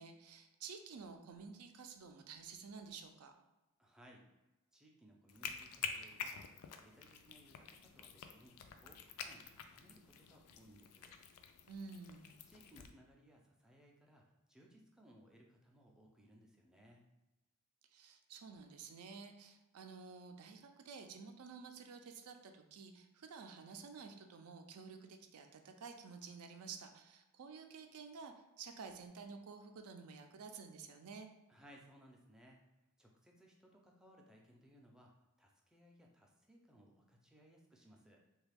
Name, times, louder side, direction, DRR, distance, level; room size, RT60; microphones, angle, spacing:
voice 1, 0.0-3.3 11.7-12.3 17.9-31.3, right 5 dB, 75° right, 5 dB, 0.4 m, -52 dB
voice 2, 3.8-4.3 4.7-6.4 6.7-11.1 12.5-14.2 14.5-17.0 31.5-32.7 33.0-35.1 35.4-38.2, equal, 5° right, -1 dB, 0.4 m, -63 dB
sound 1, 5.3-12.9, left 6 dB, 90° left, 0.3 m, -48 dB
3.2 x 2.3 x 3.4 m, 1.0 s
head